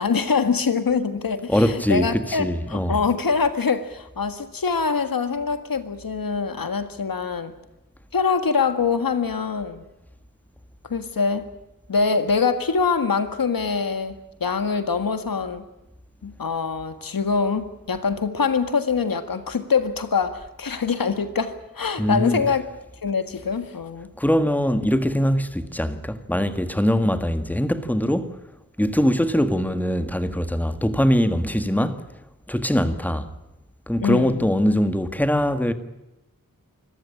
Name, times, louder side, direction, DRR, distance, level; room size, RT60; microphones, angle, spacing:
voice 1, 0.0-7.5 8.1-9.8 10.8-11.5 11.9-15.6 16.2-22.6 23.0-24.1 34.0-34.5, left 5 dB, 90° left, 1.8 m, -24 dB
voice 2, 1.5-3.0 22.0-22.4 24.2-28.4 28.8-32.0 32.5-33.3 33.9-35.7, equal, 5° left, 1.7 m, -22 dB
25.5 x 14.5 x 10.0 m
wide cardioid pair, 80°, 34 cm